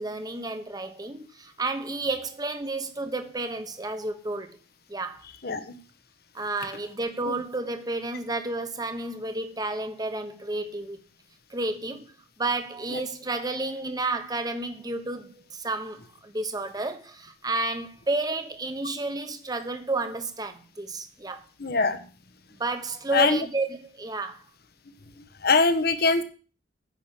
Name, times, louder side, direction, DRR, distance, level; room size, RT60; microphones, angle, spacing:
voice 1, 0.0-4.6 4.9-5.2 6.3-11.0 11.5-12.1 12.4-21.4 22.6-24.4, right 2 dB, 20° right, 1.2 m, -31 dB
voice 2, 21.6-22.0 23.1-23.4 25.4-26.2, left 4 dB, 55° left, 1.3 m, -22 dB
9.5 x 6.4 x 8.3 m
head